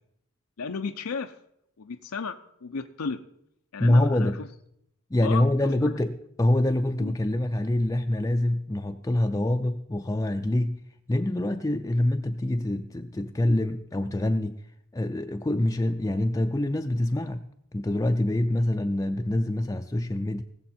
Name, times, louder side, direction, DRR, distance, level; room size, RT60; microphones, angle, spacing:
voice 1, 0.6-1.3 1.8-3.2 3.7-4.5 5.2-5.9 7.0-7.1, left 5 dB, 90° left, 5 dB, 0.6 m, -34 dB
voice 2, 3.8-4.4 5.1-10.8 11.1-14.6 14.9-20.4, left 1 dB, 15° left, 6 dB, 0.4 m, -25 dB
19.5 x 7.0 x 4.3 m, 0.74 s
head